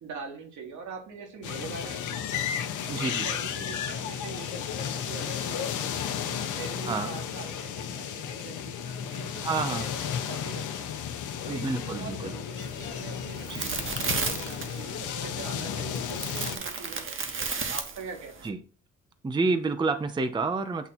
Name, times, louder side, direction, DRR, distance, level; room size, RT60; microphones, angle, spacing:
voice 1, 0.0-2.4 2.9-5.9 6.5-10.9 11.4-18.5, right 5 dB, 70° right, 2 dB, 1.9 m, -43 dB
sound 1, 1.4-16.6, left 8 dB, 80° left, 0.9 m, -33 dB
voice 2, 2.9-3.3 6.9-7.1 9.4-9.9 11.5-12.3 13.5-13.7 18.4-18.6 19.2-20.9, right 3 dB, 15° right, 10 dB, 0.5 m, -29 dB
sound 2, 12.6-18.5, right 5 dB, 40° right, 1.1 m, -34 dB
8.0 x 2.8 x 4.2 m, 0.37 s
cardioid pair, 90°, 30 cm